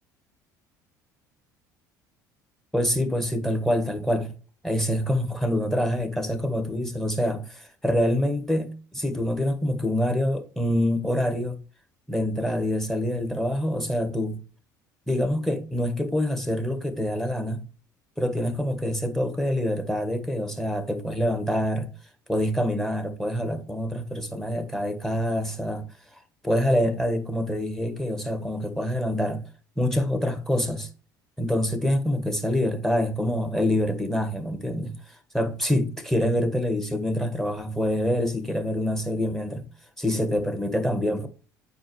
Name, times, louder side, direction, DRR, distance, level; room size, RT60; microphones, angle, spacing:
voice 1, 2.7-4.3 4.6-11.6 12.1-14.4 15.1-17.6 18.2-21.9 22.3-25.9 26.1-29.4 29.8-30.9 31.4-39.7 40.0-41.3, left 1 dB, 5° left, 1.4 m, -26 dB
8.7 x 4.7 x 3.1 m
hypercardioid pair, 65°, 10 cm